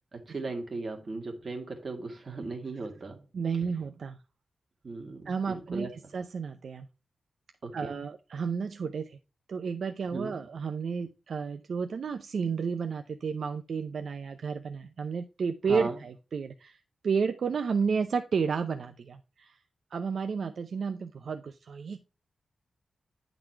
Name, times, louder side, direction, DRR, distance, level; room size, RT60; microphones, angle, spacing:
voice 1, 0.1-3.2 4.8-6.1 7.6-8.0 10.1-10.3 15.7-16.0, right 3 dB, 40° right, 1.9 m, -37 dB
voice 2, 3.3-4.2 5.3-6.9 7.7-9.2 9.5-19.6 19.9-22.0, right 5 dB, 65° right, 0.6 m, -32 dB
10.0 x 4.0 x 4.5 m
wide cardioid pair, 155°, 0 cm